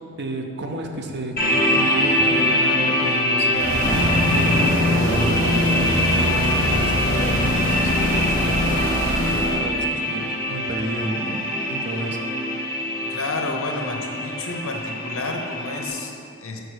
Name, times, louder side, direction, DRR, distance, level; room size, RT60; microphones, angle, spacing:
voice 1, 0.0-12.3, right 1 dB, 50° right, 4 dB, 0.7 m, -30 dB
sound 1, 1.4-15.9, left 1 dB, 45° left, 1.2 m, -24 dB
sound 2, 3.5-9.6, left 1 dB, 70° right, 1.5 m, -23 dB
voice 2, 13.0-16.6, left 2 dB, 65° left, 2 dB, 0.8 m, -30 dB
6.4 x 4.7 x 6.4 m, 2.7 s
head